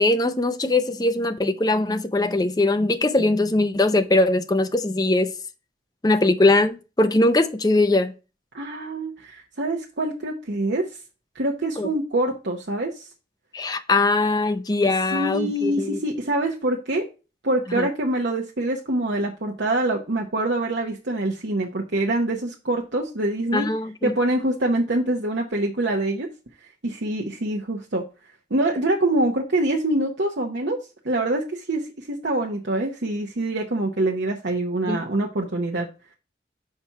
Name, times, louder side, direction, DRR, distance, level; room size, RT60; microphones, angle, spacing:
voice 1, 0.0-5.3 6.0-8.1 11.8-11.9 13.5-16.0 17.8-17.9 23.5-24.1 34.9-35.0, left 2 dB, 20° left, 0.5 m, -21 dB
voice 2, 8.5-10.9 11.3-13.1 15.1-17.0 17.4-23.7 24.0-26.3 26.8-28.0 28.5-30.8 31.0-35.9, right 1 dB, 75° right, 0.9 m, -25 dB
5.8 x 4.3 x 5.7 m
head